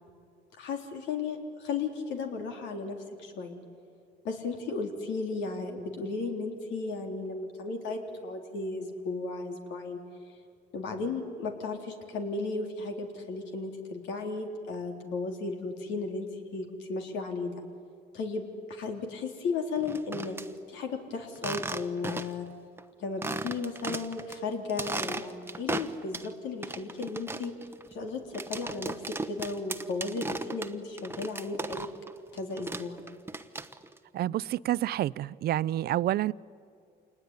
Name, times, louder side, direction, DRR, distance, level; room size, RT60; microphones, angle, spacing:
voice 1, 0.6-3.6 4.2-10.0 10.7-17.5 18.1-18.4 18.7-20.4 20.7-22.5 23.0-27.5 27.9-31.9 32.3-33.0, left 4 dB, 75° left, 3.7 m, -35 dB
sound 1, 19.8-20.5 21.3-22.5 22.8-22.9 23.2-24.4 24.7-26.3 26.6-32.1 32.4-34.0, right 3 dB, 10° right, 1.1 m, -36 dB
voice 2, 34.1-36.3, right 13 dB, 55° right, 0.5 m, -28 dB
27.5 x 20.0 x 9.8 m
cardioid pair, 100°, 19 cm